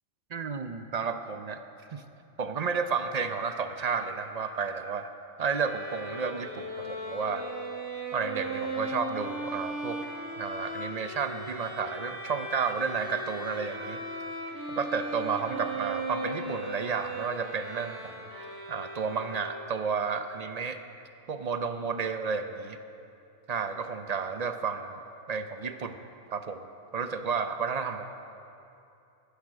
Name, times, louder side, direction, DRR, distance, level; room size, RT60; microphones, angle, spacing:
voice 1, 0.3-1.6 1.9-2.0 2.4-5.1 5.4-7.4 8.1-10.0 10.4-14.0 14.7-18.3 18.7-20.8 21.3-22.8 23.5-24.9 25.3-26.0 26.3-28.0, right 5 dB, 45° right, 8 dB, 0.6 m, -32 dB
Bowed string instrument, 5.4-19.9, right 1 dB, 20° right, 1.7 m, -38 dB
13.0 x 10.5 x 6.5 m, 2.7 s
omnidirectional pair, 1.2 m